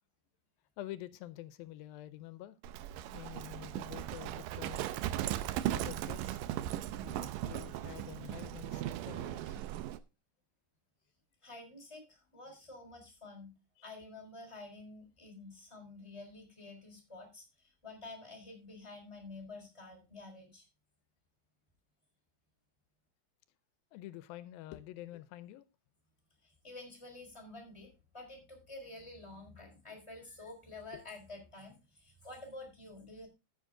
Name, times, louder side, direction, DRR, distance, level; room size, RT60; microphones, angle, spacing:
voice 1, 0.8-2.6 3.1-4.9 5.7-6.4 7.0-9.6 13.8-13.9 23.9-25.6 30.9-31.0, left 14 dB, 85° left, 2.4 m, -48 dB
Livestock farm animals working animals, 2.6-10.0, right 13 dB, 80° right, 2.2 m, -38 dB
voice 2, 11.4-13.5 13.8-20.7 26.4-33.3, left 2 dB, 10° left, 3.6 m, -50 dB
13.5 x 7.3 x 3.7 m
omnidirectional pair, 4.1 m